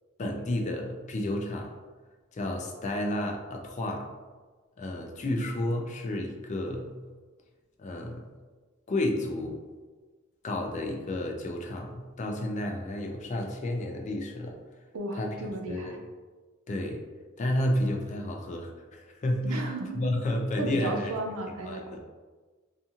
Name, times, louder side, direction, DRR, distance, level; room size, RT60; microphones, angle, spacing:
voice 1, 0.2-1.7 2.3-4.1 4.8-7.0 7.8-8.3 8.9-9.6 10.4-14.6 15.2-15.4 15.7-16.0 16.7-17.0 17.4-21.1 21.7-22.0, left 1 dB, 35° left, 2 dB, 0.3 m, -31 dB
voice 2, 14.9-16.0 19.4-20.1 20.6-22.0, right 2 dB, 75° right, 2 dB, 0.5 m, -34 dB
2.5 x 2.4 x 2.7 m, 1.3 s
head